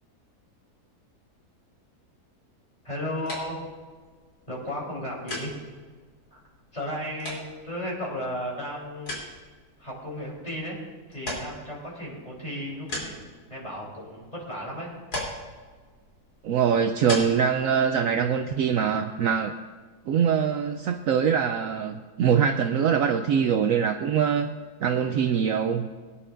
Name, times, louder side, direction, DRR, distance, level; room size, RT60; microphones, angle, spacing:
voice 1, 2.8-3.6 4.5-5.5 6.3-6.4 6.7-9.1 9.8-10.8 11.1-13.2 13.5-14.9, left 1 dB, 25° left, -4 dB, 3.8 m, -34 dB
sound 1, 3.2-18.8, left 1 dB, 80° left, 3.8 m, -41 dB
voice 2, 16.4-19.5 20.1-24.5 24.8-25.9, right 7 dB, 70° right, 6 dB, 0.9 m, -23 dB
23.0 x 9.9 x 2.6 m, 1.5 s
omnidirectional pair, 1.7 m